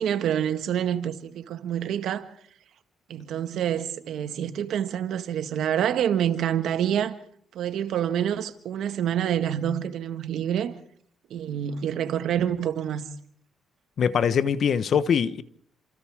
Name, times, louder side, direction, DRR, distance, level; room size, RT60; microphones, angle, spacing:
voice 1, 0.0-2.2 3.1-7.1 7.5-10.7 11.3-13.0, right 9 dB, 75° right, 1.7 m, -27 dB
voice 2, 14.0-15.4, left 7 dB, 55° left, 1.1 m, -22 dB
29.0 x 27.0 x 3.7 m
cardioid pair, 90°, 0 cm